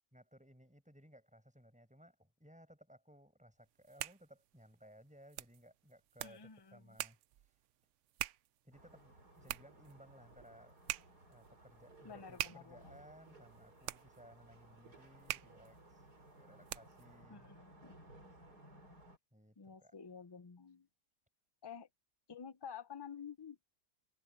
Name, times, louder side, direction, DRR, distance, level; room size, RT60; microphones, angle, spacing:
voice 1, 0.1-7.2 8.6-10.8 11.3-16.1 16.4-17.5 19.3-19.9, equal, 5° right, 7.1 m, -61 dB
sound 1, 3.7-17.1, right 13 dB, 85° right, 0.6 m, -47 dB
voice 2, 6.2-6.8 12.0-12.9 17.3-18.1 19.6-20.9 21.6-21.9 22.3-23.6, left 7 dB, 35° left, 0.4 m, -50 dB
sound 2, 8.7-19.2, right 1 dB, 65° right, 6.0 m, -60 dB
omnidirectional pair, 1.8 m